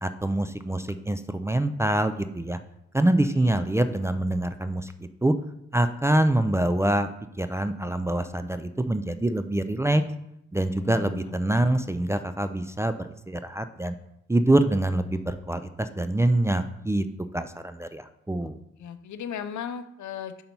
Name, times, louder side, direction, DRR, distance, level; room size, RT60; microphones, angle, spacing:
voice 1, 0.0-2.6 2.9-4.9 5.2-5.3 5.7-7.1 7.4-10.0 10.5-13.9 14.3-17.0 17.3-18.6, right 1 dB, 10° right, 8 dB, 0.3 m, -25 dB
voice 2, 10.8-11.7 18.8-20.4, left 8 dB, 75° left, 11 dB, 0.6 m, -37 dB
5.5 x 5.3 x 4.4 m, 0.80 s
cardioid pair, 75°, 29 cm